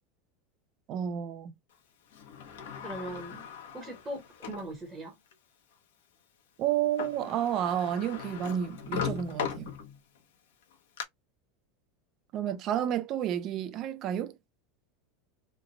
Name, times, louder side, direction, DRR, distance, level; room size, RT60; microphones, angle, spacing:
voice 1, 0.9-1.5 6.6-9.7 12.3-14.4, right 10 dB, 30° right, 0.4 m, -31 dB
Sliding door, 2.1-4.7 5.3-5.4 6.7-6.8 7.0-10.2 10.6-11.0, left 8 dB, 85° left, 0.9 m, -38 dB
voice 2, 2.8-3.4 3.7-5.2, right 1 dB, 10° right, 0.8 m, -40 dB
3.1 x 2.1 x 3.7 m
supercardioid pair, 175°, 0 cm